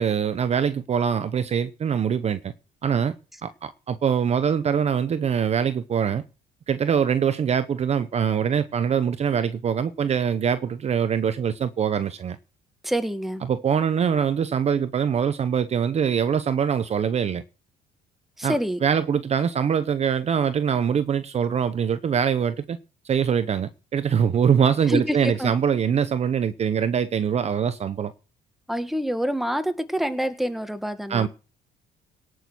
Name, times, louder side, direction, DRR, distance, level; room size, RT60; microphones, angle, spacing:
voice 1, 0.0-2.5 2.8-3.1 3.4-6.2 6.7-12.4 13.5-17.4 18.4-18.6 18.8-22.8 23.0-28.1 31.1-31.3, right 7 dB, 40° right, 0.8 m, -23 dB
voice 2, 12.8-13.4 18.4-18.8 24.9-25.5 28.7-31.3, equal, ahead, 1.6 m, -26 dB
18.0 x 6.4 x 6.2 m
cardioid pair, 110°, 17 cm